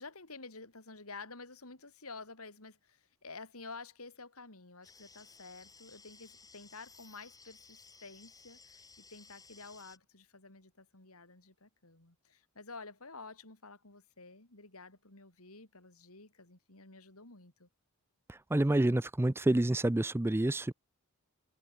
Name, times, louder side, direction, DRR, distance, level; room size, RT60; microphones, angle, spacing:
voice 1, 0.0-17.7, left 3 dB, 70° left, 4.7 m, -51 dB
sound 1, 4.8-10.0, left 4 dB, 15° left, 6.7 m, -58 dB
voice 2, 18.3-20.7, right 1 dB, 10° right, 0.4 m, -28 dB
head